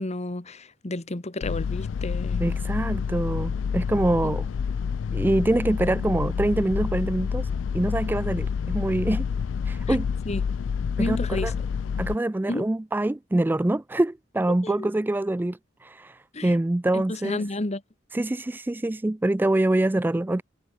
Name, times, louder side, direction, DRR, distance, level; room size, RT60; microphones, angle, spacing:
voice 1, 0.0-2.4 4.2-4.3 9.9-10.0 10.3-10.4 11.0-11.5 12.5-12.6 14.6-14.9 16.3-16.5 16.9-17.8, left 2 dB, 35° left, 1.4 m, -31 dB
sound 1, 1.4-12.2, left 6 dB, 70° left, 0.3 m, -28 dB
voice 2, 2.4-4.5 5.1-7.5 7.7-9.2 9.7-10.1 11.0-11.5 12.0-17.4 18.1-20.4, right 1 dB, 10° right, 0.3 m, -25 dB
head